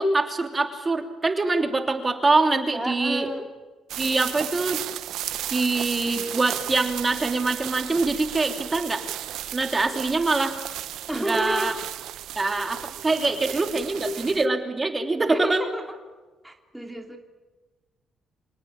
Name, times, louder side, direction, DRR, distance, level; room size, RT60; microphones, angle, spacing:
voice 1, 0.0-3.3 4.0-4.8 5.5-9.0 9.5-10.5 11.2-11.7 12.4-15.6, right 3 dB, 25° right, 5 dB, 3.1 m, -24 dB
voice 2, 2.7-3.5 6.1-6.3 11.1-11.8 13.7-14.4 15.3-16.0 16.4-17.2, right 1 dB, 5° right, 3 dB, 2.7 m, -32 dB
sound 1, 3.9-14.5, right 12 dB, 85° right, 1.0 m, -34 dB
26.5 x 18.5 x 8.9 m, 1.3 s
cardioid pair, 90°, 0 cm